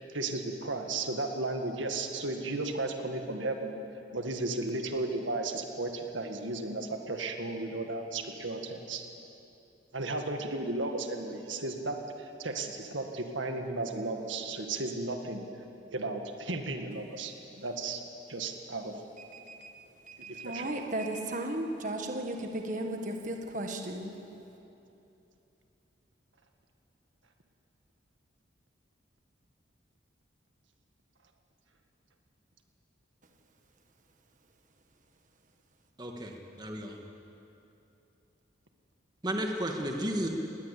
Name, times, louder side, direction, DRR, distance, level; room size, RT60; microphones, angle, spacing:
voice 1, 0.0-3.8 4.1-9.1 9.9-15.4 15.9-18.0 18.3-18.9 20.3-20.7, right 2 dB, 85° right, 4 dB, 1.9 m, -34 dB
voice 2, 19.3-19.7 20.1-24.2, right 1 dB, 40° right, 3 dB, 1.7 m, -35 dB
voice 3, 36.0-37.0 39.2-40.3, right 1 dB, 20° right, 2 dB, 1.7 m, -33 dB
20.5 x 19.0 x 8.4 m, 2.9 s
head